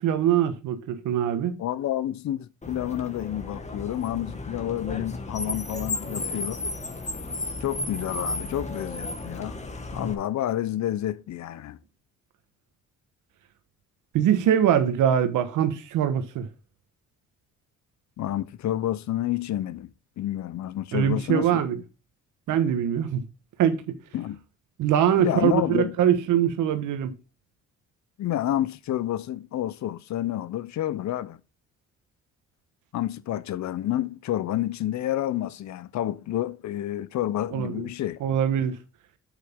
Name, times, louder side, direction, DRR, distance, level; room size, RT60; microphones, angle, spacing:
voice 1, 0.0-1.6 14.1-16.5 20.9-21.8 22.5-23.3 23.6-23.9 24.8-27.1 37.5-37.8 38.2-38.8, right 9 dB, 85° right, 1.3 m, -23 dB
voice 2, 1.6-6.6 7.6-9.6 9.9-11.8 18.2-19.9 20.2-21.6 24.1-24.4 25.2-25.9 28.2-31.4 32.9-38.2, left 12 dB, 65° left, 0.8 m, -29 dB
Car, 2.6-10.1, left 2 dB, 25° left, 1.7 m, -34 dB
8.2 x 8.0 x 3.6 m
cardioid pair, 90°, 30 cm